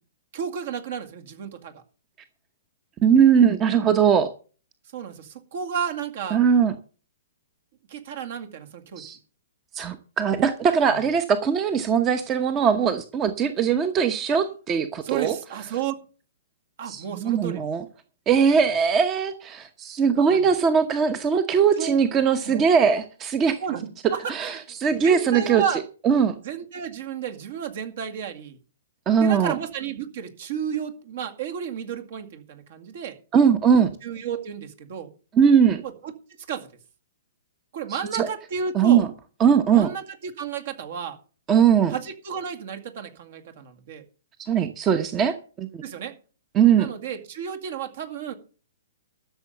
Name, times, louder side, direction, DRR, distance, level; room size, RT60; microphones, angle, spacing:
voice 1, 0.3-1.8 4.9-6.4 7.9-9.0 15.0-15.9 16.8-17.6 20.3-20.5 21.8-22.0 22.5-22.6 23.6-24.6 24.9-25.8 26.4-28.6 29.2-33.2 34.0-35.1 35.8-36.1 36.5-36.7 37.7-39.0 39.7-41.2 41.9-44.0 45.8-46.1 46.8-48.3, right 7 dB, 55° right, 7 dB, 2.1 m, -32 dB
voice 2, 3.0-4.3 6.3-6.7 9.0-9.2 9.7-15.3 16.8-17.8 18.3-23.6 24.0-26.4 29.1-29.5 33.3-33.9 35.3-35.8 37.9-38.3 38.7-39.1 39.4-39.9 41.5-42.0 44.4-45.8 46.5-46.9, right 7 dB, 25° right, 11 dB, 0.9 m, -20 dB
13.0 x 7.0 x 6.8 m, 0.38 s
figure-of-eight pair, 120°, 0 cm